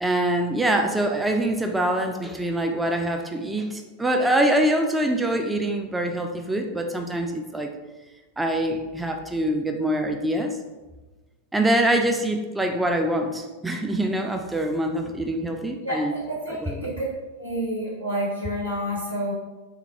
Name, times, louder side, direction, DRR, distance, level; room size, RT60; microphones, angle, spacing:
voice 1, 0.0-7.7 8.4-10.6 11.5-16.1 16.5-16.9, right 1 dB, 5° right, 3 dB, 0.4 m, -24 dB
voice 2, 15.8-17.0 17.4-19.3, equal, 85° right, -6 dB, 1.5 m, -29 dB
3.5 x 3.5 x 3.0 m, 1.2 s
figure-of-eight pair, 90°, 0 cm